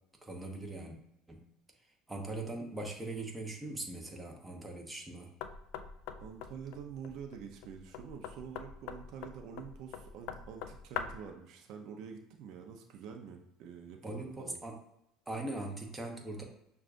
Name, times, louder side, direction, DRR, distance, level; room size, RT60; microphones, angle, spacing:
voice 1, 0.2-0.9 1.3-1.5 2.1-5.3 14.0-14.8 15.3-16.4, right 2 dB, 10° right, 1 dB, 0.8 m, -40 dB
Knock, 5.4-11.3, left 8 dB, 75° left, 0.3 m, -44 dB
voice 2, 6.2-14.6, right 7 dB, 60° right, 3 dB, 0.5 m, -47 dB
6.2 x 2.3 x 2.5 m, 0.81 s
supercardioid pair, 110°, 0 cm